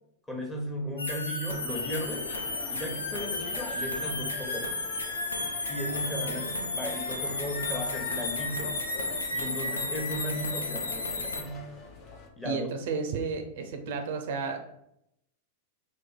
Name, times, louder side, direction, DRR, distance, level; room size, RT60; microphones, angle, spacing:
voice 1, 0.3-2.3 2.7-4.7 5.7-8.8 9.3-11.7 12.4-12.7, equal, 10° left, -1 dB, 0.9 m, -36 dB
sound 1, 1.0-11.4, left 2 dB, 85° left, 0.5 m, -33 dB
sound 2, 1.7-12.3, left 3 dB, 40° left, 0.7 m, -44 dB
voice 2, 6.3-6.9 12.4-14.6, right 5 dB, 65° right, 5 dB, 0.5 m, -33 dB
3.0 x 2.2 x 3.8 m, 0.77 s
hypercardioid pair, 95°, 0 cm